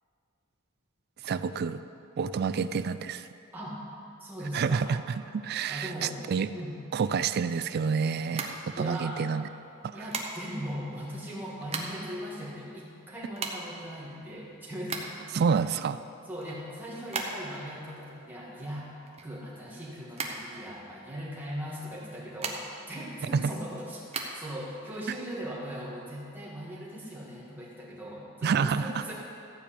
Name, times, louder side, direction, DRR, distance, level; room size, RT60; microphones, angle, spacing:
voice 1, 1.2-1.8 2.2-3.3 4.5-6.5 6.9-9.5 9.8-10.0 15.3-16.0 23.3-23.5 28.4-29.0, right 6 dB, 50° right, 13 dB, 0.3 m, -28 dB
voice 2, 4.2-4.9 5.7-6.3 6.5-6.8 8.7-9.2 9.9-15.1 15.8-15.9 16.3-18.9 19.2-22.6 22.9-29.1, equal, 10° right, -5 dB, 2.2 m, -39 dB
sound 1, 8.2-9.3 10.1-10.7 11.3-12.2 12.5-12.6 12.7-15.4 15.8-17.7 18.0-19.8 20.1-21.1 21.9-23.0 23.3-24.3, right 4 dB, 30° right, 1.0 m, -37 dB
14.5 x 5.3 x 8.5 m, 2.6 s
head